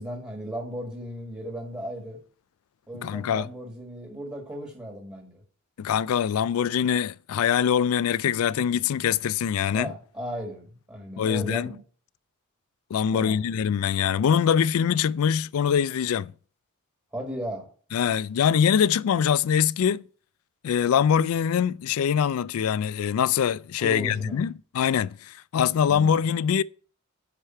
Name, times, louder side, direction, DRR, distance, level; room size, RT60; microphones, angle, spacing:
voice 1, 0.0-2.2 2.9-5.4 9.7-11.8 13.1-13.4 17.1-17.7 23.8-24.4 25.9-26.2, equal, 15° right, 1.7 m, -36 dB
voice 2, 3.0-3.5 5.8-9.9 11.2-11.7 12.9-16.3 17.9-20.0 20.6-26.6, left 8 dB, 70° left, 0.3 m, -23 dB
10.0 x 4.9 x 4.4 m
head